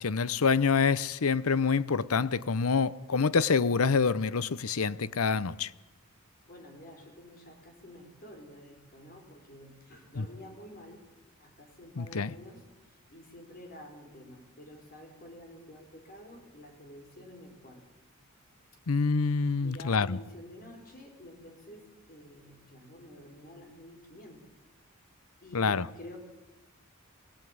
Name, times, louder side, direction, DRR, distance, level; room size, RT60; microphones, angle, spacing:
voice 1, 0.0-5.7 10.2-10.3 12.0-12.3 18.9-20.2 25.5-25.9, left 5 dB, 75° left, 0.7 m, -26 dB
voice 2, 6.4-11.0 11.4-12.6 13.1-17.8 19.6-24.4 25.4-26.2, left 1 dB, 45° left, 5.0 m, -49 dB
23.0 x 18.0 x 9.4 m
head